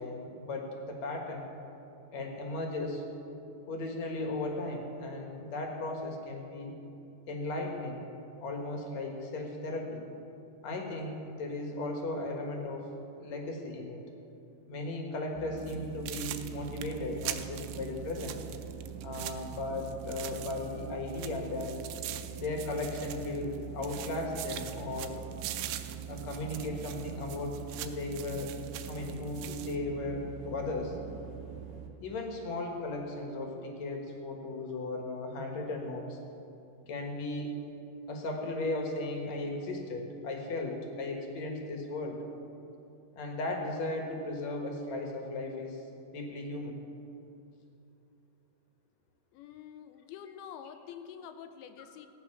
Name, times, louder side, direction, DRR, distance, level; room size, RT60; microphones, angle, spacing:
voice 1, 0.0-1.5 2.1-3.0 3.7-6.7 7.3-8.0 8.4-10.1 10.6-12.9 13.2-14.0 14.7-18.4 19.0-21.8 22.4-25.2 26.1-28.5 28.9-31.0 32.0-36.2 36.9-37.6 38.1-42.2 43.1-45.8 46.1-46.8, left 2 dB, 55° left, 2 dB, 2.2 m, -36 dB
sound 1, 15.3-31.9, right 8 dB, 65° right, 1.9 m, -43 dB
sound 2, 15.6-15.8 16.1-20.8 21.1-23.6 23.8-29.8, right 13 dB, 90° right, 2.7 m, -43 dB
voice 2, 49.3-52.1, left 8 dB, 80° left, 9 dB, 2.4 m, -47 dB
17.0 x 9.2 x 6.1 m, 2.7 s
omnidirectional pair, 4.6 m